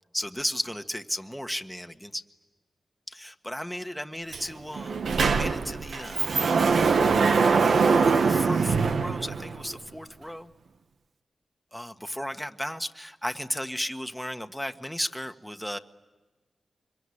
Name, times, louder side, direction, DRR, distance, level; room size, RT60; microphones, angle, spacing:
voice 1, 0.1-2.2 3.1-5.0 5.3-10.5 11.7-15.8, equal, ahead, 7 dB, 1.5 m, -35 dB
Sliding door, 4.3-4.4 4.7-9.7, right 5 dB, 80° right, 1.2 m, -23 dB
25.5 x 23.0 x 9.9 m, 1.2 s
cardioid pair, 55°, 0 cm